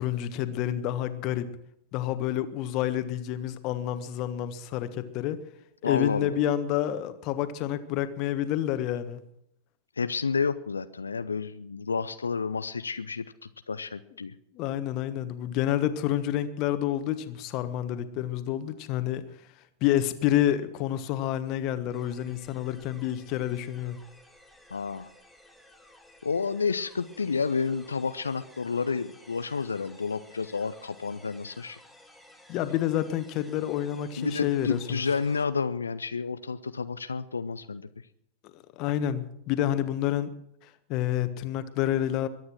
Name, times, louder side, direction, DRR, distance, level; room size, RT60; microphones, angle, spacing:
voice 1, 0.0-1.5 1.9-5.4 5.8-9.2 14.5-19.2 19.8-24.0 32.5-35.0 38.8-40.3 40.9-42.3, left 12 dB, 40° left, 11 dB, 1.4 m, -28 dB
voice 2, 5.8-6.4 10.0-13.3 13.7-14.3 24.7-25.1 26.2-31.8 34.2-37.9, left 5 dB, 75° left, 12 dB, 0.6 m, -30 dB
sound 1, 21.9-35.5, left 1 dB, 5° right, 2.6 m, -55 dB
22.5 x 9.5 x 6.1 m, 0.76 s
figure-of-eight pair, 90°, 0 cm